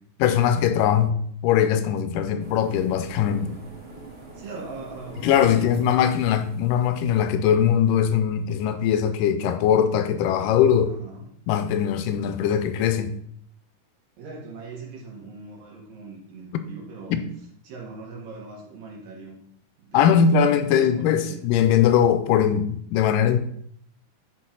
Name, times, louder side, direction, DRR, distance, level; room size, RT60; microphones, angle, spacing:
voice 1, 0.2-1.2 1.4-3.6 5.2-10.9 11.5-13.1 17.1-17.2 19.9-23.4, left 8 dB, 85° left, 2.2 m, -21 dB
sound 1, 2.4-7.2, right 3 dB, 35° right, 1.0 m, -44 dB
voice 2, 4.3-6.1 10.8-11.3 14.2-17.2 17.6-19.4 19.8-21.5, right 3 dB, 80° right, 3.5 m, -41 dB
10.0 x 4.5 x 3.8 m
omnidirectional pair, 3.9 m